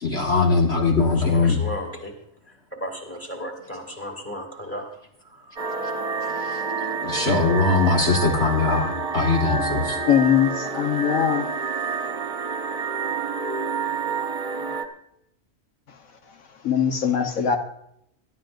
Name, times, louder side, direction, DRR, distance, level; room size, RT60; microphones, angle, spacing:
voice 1, 0.0-1.6 6.4-6.6 7.0-10.0, left 3 dB, 55° left, -1 dB, 1.8 m, -21 dB
voice 2, 1.2-2.1 2.7-4.9 5.3-5.7, equal, 10° left, 2 dB, 2.9 m, -34 dB
sound 1, 5.6-14.8, right 5 dB, 30° right, 1.2 m, -28 dB
voice 3, 10.1-11.5 16.6-17.6, left 8 dB, 85° left, 4 dB, 1.5 m, -21 dB
23.0 x 12.5 x 2.6 m, 0.76 s
omnidirectional pair, 1.4 m